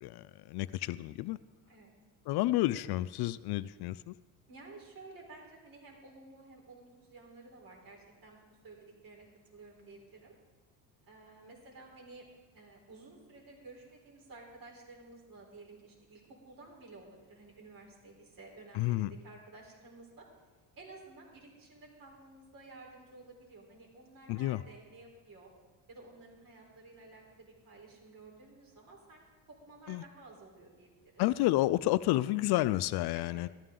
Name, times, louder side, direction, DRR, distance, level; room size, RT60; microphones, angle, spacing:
voice 1, 0.0-1.4 2.3-4.1 18.7-19.1 24.3-24.6 29.9-30.0 31.2-33.5, left 16 dB, 65° left, 16 dB, 0.5 m, -30 dB
voice 2, 4.5-8.4 8.6-9.3 9.5-10.3 11.1-12.2 12.5-20.3 20.7-25.5 25.9-29.2 29.5-31.2 33.1-33.4, right 3 dB, 55° right, -1 dB, 4.2 m, -53 dB
14.0 x 13.0 x 3.8 m, 1.4 s
cardioid pair, 105°, 42 cm